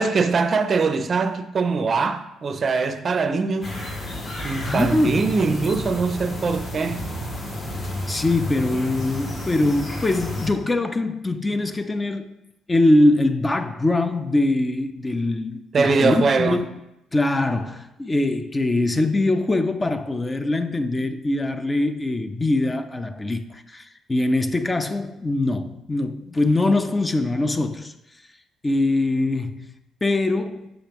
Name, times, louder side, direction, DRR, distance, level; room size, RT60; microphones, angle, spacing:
voice 1, 0.0-3.8 4.4-7.0 15.7-16.6, right 4 dB, 40° right, 0.5 m, -22 dB
sound 1, 3.6-10.5, left 1 dB, 50° left, 2.1 m, -31 dB
voice 2, 4.6-5.2 8.1-12.3 12.7-16.7 17.1-27.9 28.6-29.7 30.0-30.7, left 2 dB, 20° left, 0.4 m, -22 dB
7.3 x 5.1 x 3.0 m
cardioid pair, 85°, 0 cm